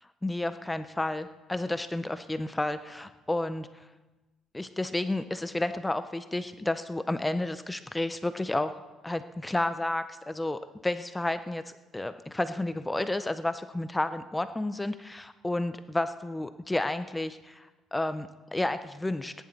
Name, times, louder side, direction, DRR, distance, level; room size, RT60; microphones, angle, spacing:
voice 1, 0.2-3.8 4.5-8.7 9.0-11.6 11.9-19.3, left 2 dB, 10° left, 11 dB, 0.4 m, -31 dB
18.5 x 10.5 x 4.0 m, 1.2 s
cardioid pair, 130°, 0 cm